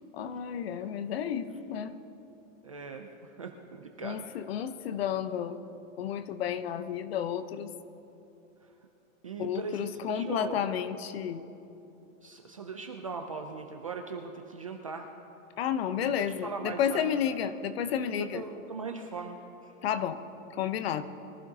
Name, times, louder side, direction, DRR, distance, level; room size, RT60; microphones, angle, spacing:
voice 1, 0.1-2.0 4.0-5.6 6.0-7.7 9.4-11.4 15.6-18.4 19.8-20.2 20.5-21.0, left 9 dB, 45° left, 11 dB, 0.8 m, -31 dB
voice 2, 2.6-4.3 9.2-10.7 12.2-15.1 16.0-17.1 18.2-19.7, right 4 dB, 30° right, 4 dB, 0.3 m, -40 dB
23.0 x 14.5 x 2.7 m, 2.9 s
hypercardioid pair, 165°, 41 cm